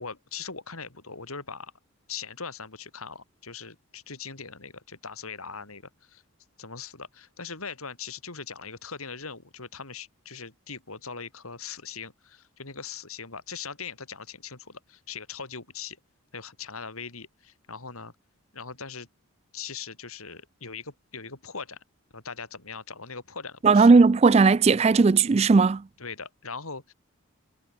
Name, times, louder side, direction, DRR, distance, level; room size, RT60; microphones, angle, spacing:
voice 1, 0.0-1.7 2.1-6.2 6.6-16.0 16.3-18.1 18.5-19.1 19.5-21.8 22.1-23.9 26.0-26.9, left 5 dB, 90° left, 4.3 m, -40 dB
voice 2, 23.6-25.8, right 4 dB, 30° right, 0.3 m, -17 dB
head